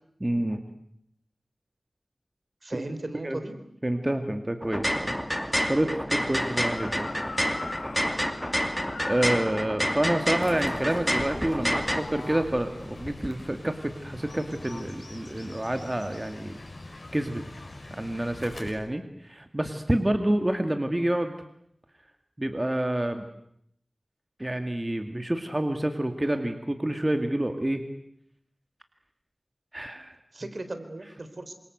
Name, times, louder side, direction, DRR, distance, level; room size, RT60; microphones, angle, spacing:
voice 1, 0.2-0.6 2.8-2.9 3.2-3.4 3.8-7.3 9.1-16.6 17.1-17.6 18.0-21.3 22.4-23.3 24.4-27.8 29.7-30.1, right 1 dB, 25° right, 6 dB, 2.4 m, -28 dB
voice 2, 2.6-3.5 30.3-31.5, right 2 dB, 55° right, 9 dB, 3.9 m, -37 dB
sound 1, 4.6-12.0, equal, 5° left, 2.7 m, -28 dB
sound 2, 6.3-9.7, left 3 dB, 80° left, 1.3 m, -41 dB
Fowl / Bird, 10.4-18.7, left 2 dB, 60° left, 6.6 m, -42 dB
27.5 x 26.5 x 8.1 m, 0.73 s
wide cardioid pair, 60°, 0 cm